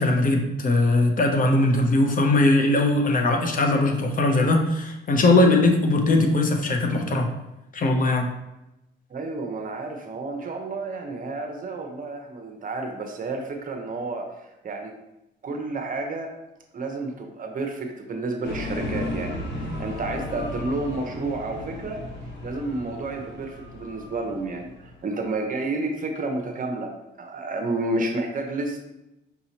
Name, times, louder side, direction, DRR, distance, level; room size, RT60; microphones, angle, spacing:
voice 1, 0.0-7.3 7.7-8.3, left 2 dB, 45° left, 3 dB, 0.7 m, -20 dB
voice 2, 9.1-14.9 15.4-16.3 16.7-22.0 22.4-28.8, right 2 dB, 45° right, 3 dB, 0.8 m, -31 dB
sound 1, 18.4-25.2, left 1 dB, 65° left, 1.1 m, -34 dB
5.6 x 2.9 x 2.8 m, 0.93 s
cardioid pair, 90°, 20 cm